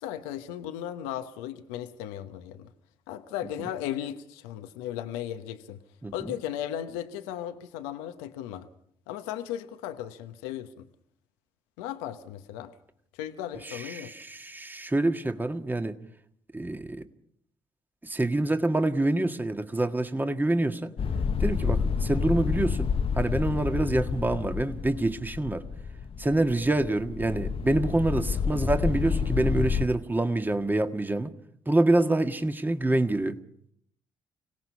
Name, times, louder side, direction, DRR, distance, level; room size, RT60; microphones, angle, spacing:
voice 1, 0.0-2.7 3.1-5.8 6.1-8.7 9.1-10.9 11.8-12.7 13.2-14.1, left 11 dB, 90° left, 1.0 m, -36 dB
voice 2, 13.6-16.0 16.5-17.0 18.0-20.9 21.4-22.9 23.2-25.6 26.2-31.3 31.7-33.4, right 2 dB, 15° right, 1.7 m, -26 dB
sound 1, 21.0-29.9, left 6 dB, 55° left, 1.0 m, -29 dB
26.0 x 17.5 x 5.6 m
hypercardioid pair, 50°, 12 cm